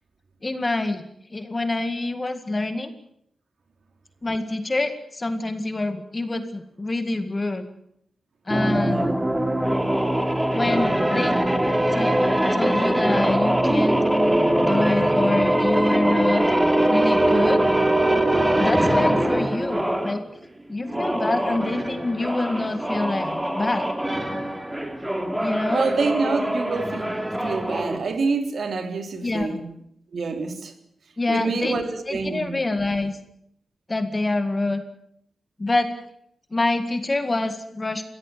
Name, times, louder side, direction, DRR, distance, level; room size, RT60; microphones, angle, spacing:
voice 1, 0.4-1.0 1.3-2.9 4.2-7.7 8.5-9.1 10.5-11.4 11.9-12.1 12.5-14.0 14.6-16.5 16.9-17.6 18.6-20.2 20.7-23.9 25.4-25.9 29.2-29.6 31.2-31.8 32.1-33.2 33.9-34.8 35.6-35.9 36.5-38.0, left 2 dB, 25° left, 9 dB, 2.0 m, -26 dB
sound 1, 8.5-20.2 20.8-28.0, right 1 dB, 10° right, 3.2 m, -22 dB
voice 2, 8.5-9.2 18.9-19.3 25.7-27.1 27.4-29.6 30.1-30.7 31.3-32.5, right 4 dB, 60° right, 6 dB, 3.6 m, -27 dB
23.5 x 16.5 x 9.3 m, 0.71 s
wide cardioid pair, 110°, 0 cm